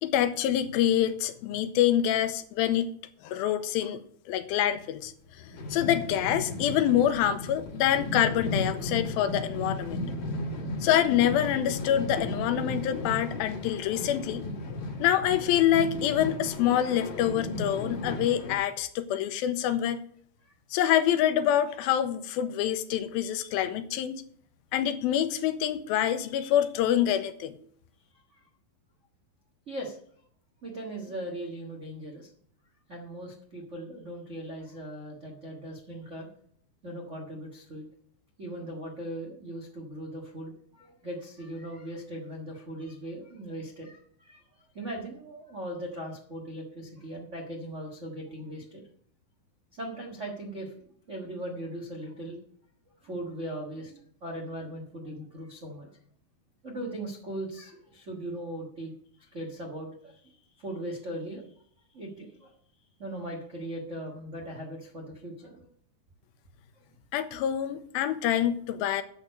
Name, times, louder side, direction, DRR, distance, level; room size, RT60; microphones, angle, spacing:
voice 1, 0.0-2.9 3.2-4.0 4.3-5.1 5.7-10.0 10.8-14.5 15.0-20.0 20.7-24.2 24.7-27.5 67.1-69.0, left 11 dB, 85° left, 11 dB, 2.5 m, -26 dB
sound 1, 5.3-18.6, left 2 dB, 55° left, 2.8 m, -35 dB
voice 2, 29.7-30.0 30.6-32.3 32.9-36.3 36.8-37.8 38.4-44.4 44.7-48.8 49.7-52.4 53.0-56.0 56.6-58.9 59.2-61.4 61.9-62.5 63.0-65.7, right 1 dB, 85° right, -1 dB, 0.6 m, -39 dB
9.4 x 6.6 x 6.5 m, 0.63 s
omnidirectional pair, 4.3 m